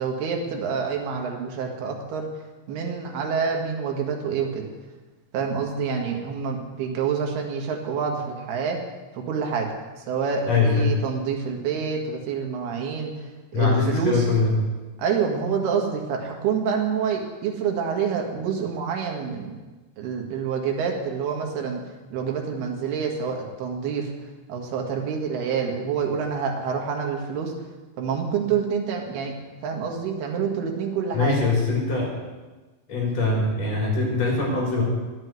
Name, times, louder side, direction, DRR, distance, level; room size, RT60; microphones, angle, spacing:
voice 1, 0.0-2.3 2.7-4.7 5.3-8.8 9.1-9.7 10.1-13.1 13.5-14.3 15.0-19.6 20.0-21.8 22.1-24.1 24.5-27.5 28.0-29.3 29.6-31.4, right 6 dB, 60° right, 1 dB, 3.0 m, -27 dB
voice 2, 10.5-10.9 13.5-14.6 31.1-32.1 32.9-34.8, left 3 dB, 35° left, -3 dB, 4.7 m, -22 dB
11.0 x 7.9 x 9.4 m, 1.2 s
omnidirectional pair, 6.0 m